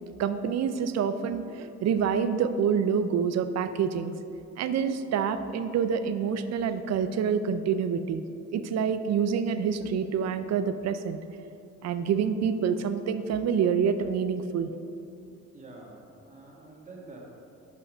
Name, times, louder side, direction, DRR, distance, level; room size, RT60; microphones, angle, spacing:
voice 1, 0.2-4.1 4.6-8.2 8.5-11.2 11.8-14.8, right 7 dB, 60° right, 11 dB, 0.5 m, -27 dB
voice 2, 15.5-17.2, right 2 dB, 25° right, -3 dB, 1.7 m, -47 dB
6.1 x 5.6 x 5.4 m, 2.6 s
cardioid pair, 90°, 30 cm